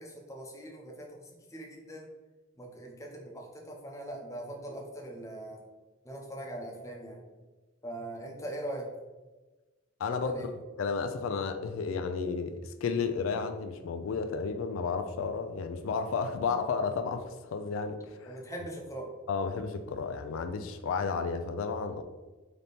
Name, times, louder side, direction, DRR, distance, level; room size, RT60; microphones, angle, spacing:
voice 1, 0.0-2.1 2.6-5.6 6.0-7.2 7.8-8.9 10.1-10.5 18.3-19.1, right 1 dB, 15° left, 0 dB, 0.7 m, -41 dB
voice 2, 10.0-10.3 10.8-18.4 19.3-22.0, left 5 dB, 90° left, 8 dB, 0.4 m, -32 dB
4.0 x 2.8 x 3.4 m, 1.2 s
head